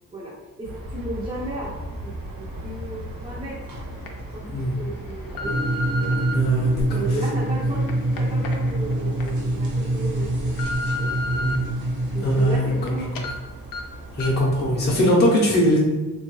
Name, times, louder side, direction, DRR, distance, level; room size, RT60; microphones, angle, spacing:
voice 1, 0.1-3.6 4.3-4.5 4.8-6.2 6.9-10.7 11.0-11.7 12.1-13.3, right 2 dB, 15° right, -6 dB, 0.5 m, -35 dB
sound 1, 0.6-15.0, equal, 85° right, 1.0 m, -38 dB
sound 2, 3.0-3.1 3.8-4.1 4.7-6.3 7.0-9.3 9.7-9.8 10.3-11.6 12.0-12.9 13.1-13.3 13.7-13.8 14.2-14.5 14.8-14.9, left 2 dB, 85° left, 0.5 m, -33 dB
voice 2, 4.5-4.9 6.3-6.9 11.4-11.7 12.2-13.2 14.1-15.8, equal, 30° left, -5 dB, 0.6 m, -21 dB
sound 3, 5.4-12.6, right 1 dB, 60° right, 0.7 m, -25 dB
3.6 x 2.3 x 3.0 m, 1.2 s
wide cardioid pair, 170°, 33 cm